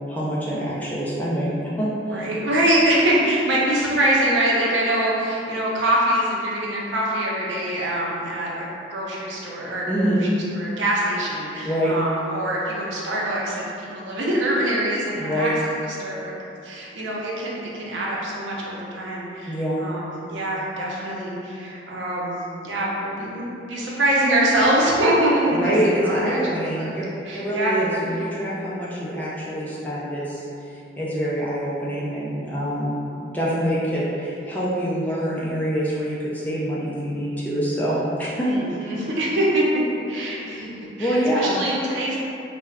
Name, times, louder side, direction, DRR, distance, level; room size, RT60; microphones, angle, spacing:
voice 1, 0.1-2.2 9.9-10.2 11.6-11.9 15.2-15.6 19.5-19.8 25.4-27.0 27.3-38.5 41.0-41.6, equal, 10° left, -8 dB, 0.4 m, -25 dB
voice 2, 2.1-9.9 10.2-10.3 10.6-15.5 16.0-16.3 16.6-22.4 22.6-25.7 26.0-26.9 27.2-27.8 38.4-39.6 40.1-40.7 41.0-42.2, right 1 dB, 90° right, -5 dB, 0.6 m, -24 dB
2.3 x 2.1 x 3.4 m, 2.6 s
head